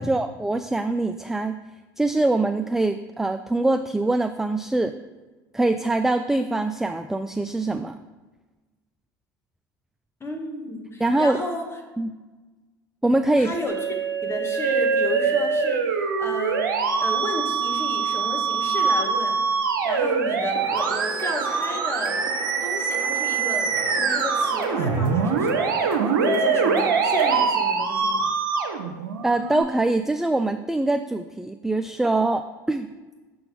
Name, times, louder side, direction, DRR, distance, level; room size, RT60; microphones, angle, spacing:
voice 1, 0.0-1.6 2.0-4.9 5.5-8.0 11.0-11.4 12.0-12.1 13.0-13.5 29.2-32.9, right 2 dB, 5° right, 9 dB, 0.3 m, -23 dB
voice 2, 10.2-11.7 13.4-16.7 17.0-19.4 19.8-22.2 22.6-28.3, left 2 dB, 20° left, 1 dB, 1.8 m, -33 dB
Musical instrument, 13.7-29.6, right 5 dB, 85° right, 0.8 m, -24 dB
sound 1, 20.6-27.4, right 4 dB, 50° right, 1.3 m, -35 dB
6.6 x 3.9 x 6.1 m, 1.2 s
hypercardioid pair, 75°, 11 cm